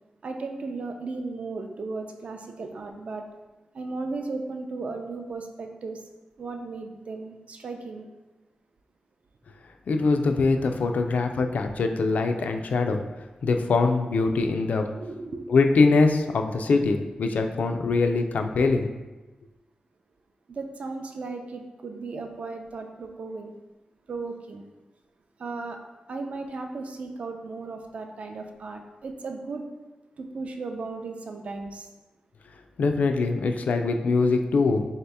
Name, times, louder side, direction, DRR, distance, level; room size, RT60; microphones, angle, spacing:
voice 1, 0.2-3.2 3.7-6.0 6.4-8.1 14.9-15.4 20.5-23.5 24.1-24.6 25.4-25.8 26.1-29.7 30.2-31.9, right 3 dB, 55° right, 4 dB, 0.4 m, -35 dB
voice 2, 9.9-13.0 13.4-14.9 15.5-18.9 32.8-34.8, left 3 dB, 80° left, 5 dB, 0.3 m, -23 dB
3.9 x 2.7 x 3.4 m, 1.1 s
wide cardioid pair, 145°, 3 cm